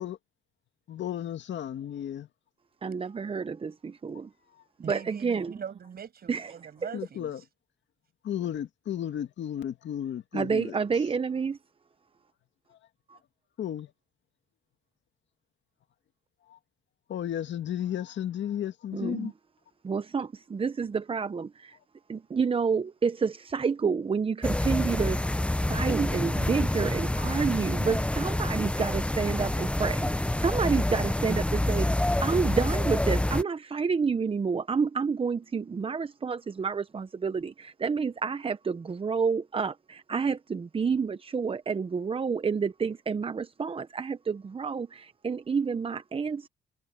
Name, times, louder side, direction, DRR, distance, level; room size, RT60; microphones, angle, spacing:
voice 1, 0.9-2.3 6.9-7.4 8.2-10.8 13.6-13.9 16.5-16.6 17.1-19.3, left 10 dB, 65° left, 2.2 m, -33 dB
voice 2, 2.8-3.7 4.0-4.1 4.9-5.5 6.3-6.5 10.3-11.5 18.9-19.3 19.9-21.5 22.1-25.2 25.7-30.0 30.4-31.9 32.2-37.5 37.8-39.7 40.1-44.9 45.2-46.5, right 5 dB, 30° right, 0.7 m, -29 dB
voice 3, 4.8-7.4, right 7 dB, 50° right, 6.8 m, -41 dB
sound 1, 24.4-33.4, left 1 dB, 5° left, 0.8 m, -27 dB
cardioid pair, 90°, 20 cm